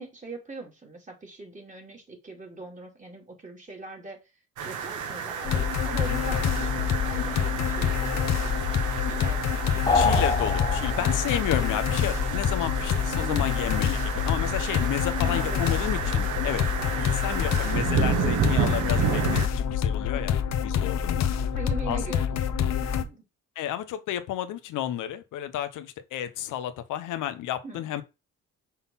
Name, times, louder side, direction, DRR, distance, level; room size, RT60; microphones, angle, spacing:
voice 1, 0.0-4.2 4.6-8.6 9.2-10.0 13.1-13.7 15.2-16.0 21.5-23.2 27.6-27.9, right 3 dB, 25° right, 3.0 m, -41 dB
sound 1, 4.6-19.5, right 7 dB, 75° right, 1.5 m, -31 dB
sound 2, 5.4-23.0, left 8 dB, 60° left, 0.9 m, -27 dB
voice 2, 9.9-20.4 20.6-21.3 21.9-22.0 23.6-28.0, left 11 dB, 90° left, 1.0 m, -32 dB
sound 3, 9.9-11.4, left 3 dB, 15° left, 1.9 m, -25 dB
5.7 x 4.1 x 5.6 m
cardioid pair, 90°, 30 cm